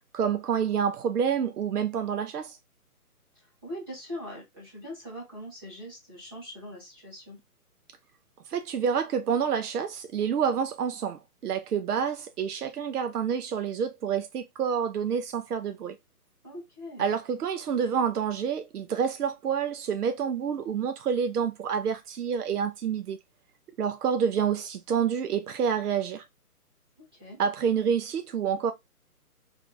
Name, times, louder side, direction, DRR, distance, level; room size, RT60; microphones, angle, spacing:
voice 1, 0.1-2.6 8.5-16.0 17.0-23.2 23.8-26.2 27.4-28.7, right 7 dB, 75° right, 0.7 m, -28 dB
voice 2, 3.3-7.4 16.4-17.1 27.0-27.4, equal, 15° right, 1.2 m, -42 dB
3.3 x 2.5 x 3.6 m
hypercardioid pair, 175°, 46 cm